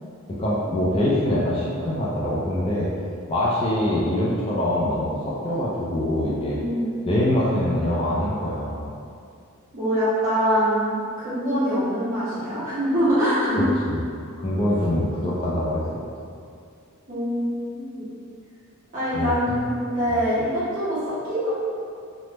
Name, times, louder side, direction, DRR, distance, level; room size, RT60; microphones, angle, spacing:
voice 1, 0.3-2.9 3.3-6.6 7.1-8.9 13.6-14.0 14.4-16.0 19.1-19.7, left 1 dB, 25° left, -6 dB, 0.3 m, -24 dB
voice 2, 6.5-7.5 9.7-13.6 17.1-18.1 18.9-21.5, equal, 40° right, -13 dB, 1.4 m, -24 dB
3.2 x 2.1 x 2.9 m, 2.4 s
head